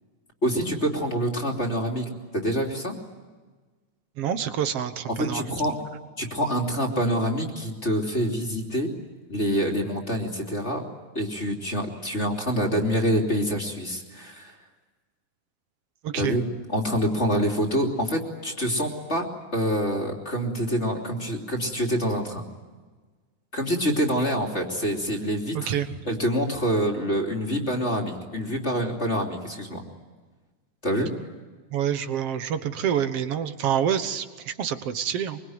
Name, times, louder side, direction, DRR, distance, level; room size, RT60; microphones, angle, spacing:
voice 1, 0.4-3.0 5.1-5.8 6.2-8.9 9.3-10.8 11.1-14.5 16.1-16.4 16.7-19.3 19.5-22.4 23.5-25.7 26.0-29.8 30.8-31.1, equal, 20° left, 1 dB, 3.0 m, -26 dB
voice 2, 4.2-5.5 16.0-16.4 25.5-25.9 31.7-35.4, right 9 dB, 60° right, 10 dB, 2.0 m, -27 dB
24.0 x 24.0 x 9.5 m, 1.4 s
omnidirectional pair, 3.5 m